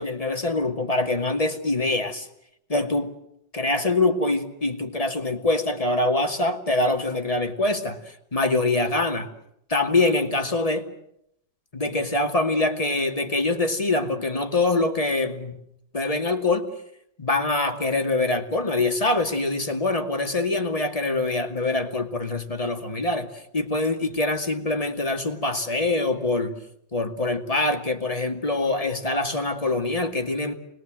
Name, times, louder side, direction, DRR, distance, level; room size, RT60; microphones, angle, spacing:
voice 1, 0.0-2.3 2.7-3.1 3.5-9.3 9.7-10.9 11.7-15.6 15.9-16.7 17.2-26.6 26.9-30.5, left 2 dB, 20° left, 2.3 m, -24 dB
29.5 x 21.0 x 7.7 m
omnidirectional pair, 2.0 m